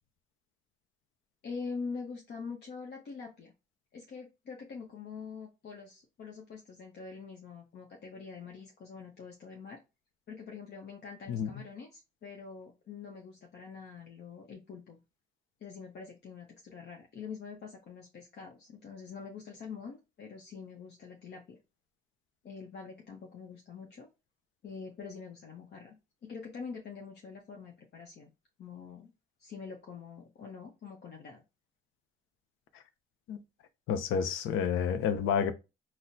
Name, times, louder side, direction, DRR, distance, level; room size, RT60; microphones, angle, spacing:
voice 1, 1.4-3.5 3.9-9.8 10.3-15.0 15.6-21.6 22.4-24.1 24.6-26.0 26.2-28.3 28.6-29.1 29.4-31.4, left 5 dB, 60° left, 0.8 m, -45 dB
voice 2, 33.9-35.5, left 7 dB, 85° left, 0.5 m, -29 dB
4.1 x 2.1 x 2.6 m
cardioid pair, 90°, 20 cm